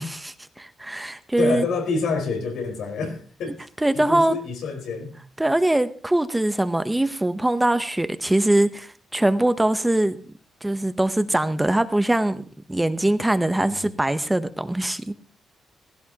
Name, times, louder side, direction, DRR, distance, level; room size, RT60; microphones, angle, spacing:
voice 1, 0.0-1.7 3.8-4.4 5.4-10.2 10.6-12.4 12.7-15.1, right 1 dB, 10° right, 0.8 m, -22 dB
voice 2, 1.4-3.6 3.9-5.2 13.6-13.8, left 4 dB, 90° left, 4.5 m, -28 dB
16.0 x 16.0 x 2.9 m
cardioid pair, 125°, 0 cm